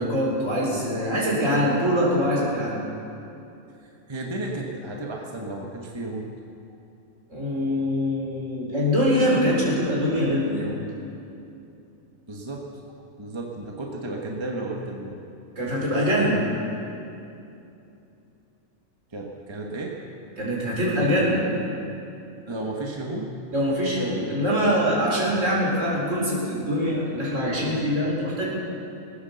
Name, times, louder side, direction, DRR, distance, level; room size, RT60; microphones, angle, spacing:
voice 1, 0.0-2.8 7.3-10.8 15.6-16.4 20.4-21.5 23.5-28.4, equal, 60° right, -4 dB, 4.2 m, -23 dB
voice 2, 3.8-6.3 12.3-12.6 13.2-15.2 15.8-15.9 19.1-19.9 22.4-23.3, right 2 dB, 20° right, -1 dB, 1.3 m, -33 dB
20.5 x 9.3 x 7.0 m, 2.7 s
omnidirectional pair, 1.5 m